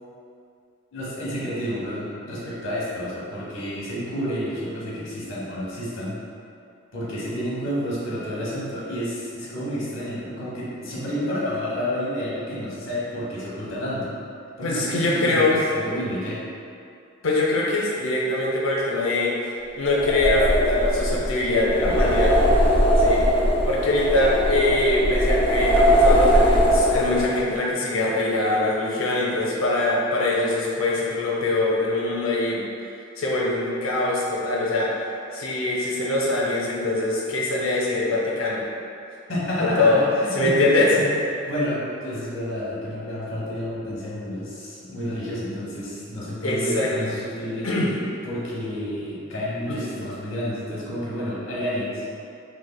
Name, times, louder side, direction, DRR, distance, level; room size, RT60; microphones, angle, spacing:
voice 1, 0.9-6.2 6.9-14.1 14.6-16.4 39.3-40.6 40.9-41.1 41.4-47.7 48.2-52.0, equal, 65° left, -7 dB, 1.0 m, -30 dB
voice 2, 14.6-15.6 17.2-19.3 19.7-22.3 23.0-23.2 23.6-32.6 33.2-35.1 35.3-38.6 39.6-40.0 40.3-40.9 46.4-47.1 47.6-47.9 49.7-49.9, left 2 dB, 85° left, -4 dB, 0.6 m, -23 dB
sound 1, 19.9-27.4, equal, 25° left, 0.4 m, -20 dB
3.3 x 3.1 x 2.2 m, 2.5 s
head